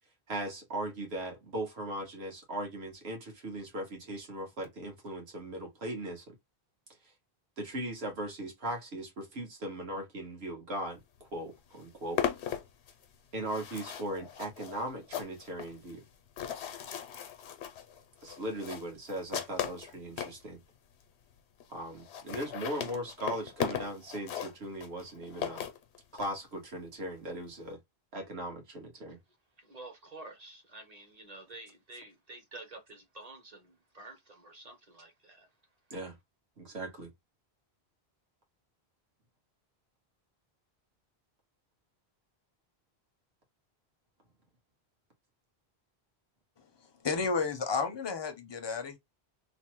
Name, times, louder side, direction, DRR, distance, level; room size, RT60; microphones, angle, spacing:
voice 1, 0.3-6.3 7.6-12.2 13.3-16.0 18.2-20.6 21.7-25.7 26.1-27.8 28.1-29.2 35.9-36.2 36.6-37.1, right 1 dB, 75° right, 1.4 m, -38 dB
sound 1, 11.2-11.3 11.5-20.4 21.0-21.1 21.3-21.4 21.6-21.7 21.9-26.3, left 9 dB, 90° left, 0.9 m, -38 dB
voice 2, 29.7-35.5, right 2 dB, 40° right, 0.8 m, -49 dB
voice 3, 47.0-49.0, left 4 dB, 35° left, 0.4 m, -32 dB
3.2 x 2.0 x 3.0 m
omnidirectional pair, 1.1 m